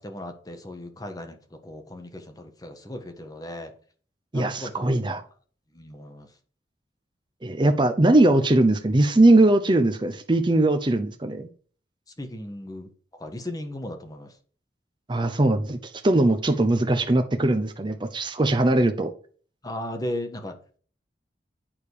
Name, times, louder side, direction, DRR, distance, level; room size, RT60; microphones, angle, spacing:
voice 1, 0.0-3.7 4.3-4.9 5.7-6.3 12.2-14.3 19.6-20.8, left 1 dB, 20° left, 5 dB, 1.4 m, -36 dB
voice 2, 4.3-5.2 7.4-11.5 15.1-19.1, right 2 dB, 25° right, 6 dB, 0.7 m, -20 dB
8.8 x 5.1 x 4.8 m, 0.43 s
head